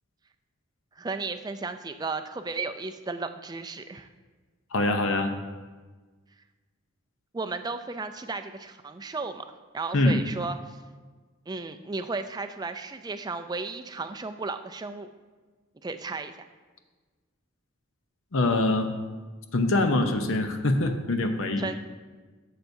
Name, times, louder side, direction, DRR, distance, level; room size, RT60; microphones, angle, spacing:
voice 1, 1.0-4.1 7.3-9.5 9.7-10.8 11.5-15.1 15.8-16.3 21.6-21.7, right 3 dB, 20° right, 8 dB, 0.3 m, -34 dB
voice 2, 4.7-5.3 9.9-10.2 18.3-18.9 19.5-21.7, left 2 dB, 65° left, 6 dB, 0.7 m, -24 dB
13.5 x 6.8 x 2.7 m, 1.4 s
head